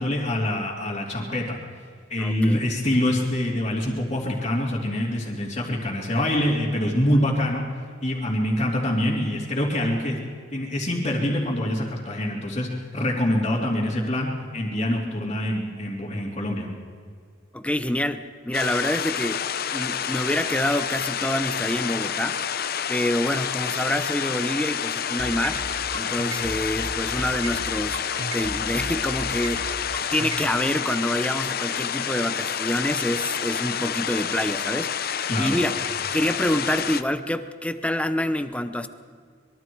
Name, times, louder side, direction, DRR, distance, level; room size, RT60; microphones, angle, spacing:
voice 1, 0.0-1.6 2.1-7.6 8.0-10.2 10.5-12.7 12.9-16.7 35.3-35.6, left 1 dB, 30° left, -8 dB, 3.1 m, -25 dB
voice 2, 2.2-2.6 7.1-7.3 17.5-19.4 19.7-22.4 22.9-25.6 25.9-28.1 28.3-35.8 36.1-38.9, left 1 dB, 5° left, 10 dB, 0.9 m, -27 dB
sound 1, 18.5-37.0, left 8 dB, 50° left, 0.8 m, -29 dB
sound 2, 25.2-30.5, right 2 dB, 85° right, 2.2 m, -34 dB
25.0 x 22.5 x 4.7 m, 2.1 s
head